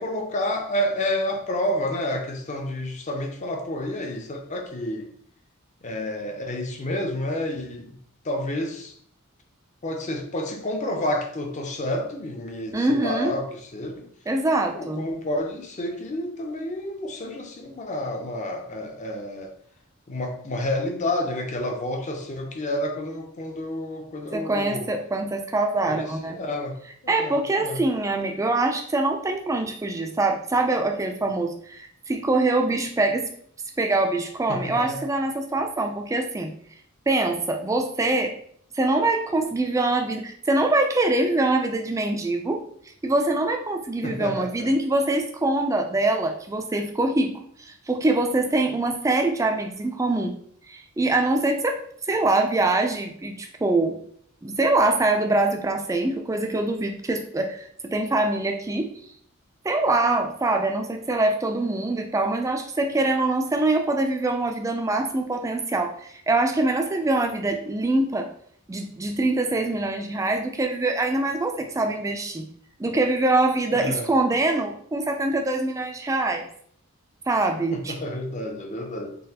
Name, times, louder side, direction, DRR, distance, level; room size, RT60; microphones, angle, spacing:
voice 1, 0.0-5.1 5.8-8.0 8.2-8.9 9.8-14.1 14.7-19.5 20.1-24.9 25.8-26.8 27.0-27.8 34.5-35.0 44.0-44.7 73.7-74.1 77.7-79.2, left 1 dB, 35° left, 4 dB, 0.5 m, -30 dB
voice 2, 12.7-13.4 14.3-15.1 24.3-26.4 27.1-33.3 33.8-36.5 37.1-38.3 38.7-42.6 43.0-47.3 47.6-50.3 50.7-51.8 52.1-54.0 54.4-58.9 59.6-68.3 68.7-72.5 72.8-76.4 77.3-78.0, right 2 dB, 15° right, 4 dB, 0.3 m, -24 dB
3.9 x 3.0 x 2.8 m, 0.62 s
head